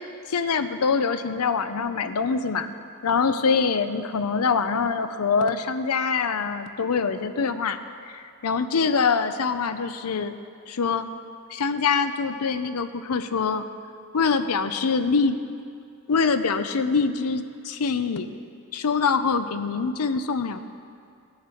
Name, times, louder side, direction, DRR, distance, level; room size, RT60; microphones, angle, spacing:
voice 1, 0.3-2.7 3.0-7.8 8.1-10.3 10.7-11.1 11.5-13.7 14.1-15.4 16.1-18.3 18.7-20.6, left 5 dB, 85° left, 10 dB, 0.6 m, -24 dB
18.5 x 6.6 x 4.4 m, 2.4 s
head